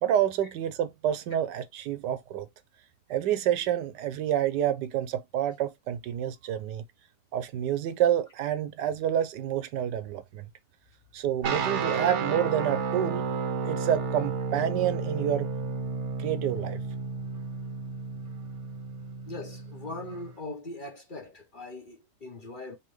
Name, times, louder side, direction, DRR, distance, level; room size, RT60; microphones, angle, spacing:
voice 1, 0.0-2.5 3.1-6.8 7.3-10.5 11.1-13.2 13.6-15.5 16.2-16.8, right 10 dB, 80° right, 1.3 m, -28 dB
sound 1, 11.4-20.3, right 5 dB, 55° right, 0.9 m, -32 dB
voice 2, 19.3-22.8, left 2 dB, 35° left, 0.9 m, -40 dB
5.5 x 2.9 x 3.1 m
omnidirectional pair, 1.8 m